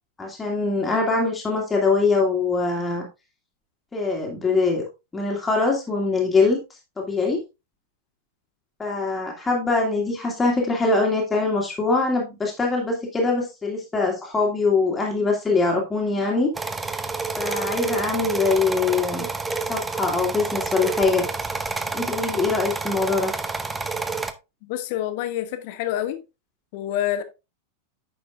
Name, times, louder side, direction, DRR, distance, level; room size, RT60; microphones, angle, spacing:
voice 1, 0.2-3.1 3.9-4.8 5.1-6.6 7.0-7.4 8.8-16.5 17.4-19.3 19.7-21.3 21.9-23.3, left 3 dB, 15° left, 2.1 m, -23 dB
sound 1, 16.5-24.3, right 4 dB, 10° right, 0.7 m, -29 dB
voice 2, 24.6-26.2 26.7-27.2, left 12 dB, 50° left, 1.2 m, -27 dB
9.7 x 6.3 x 2.5 m
figure-of-eight pair, 90°, 0 cm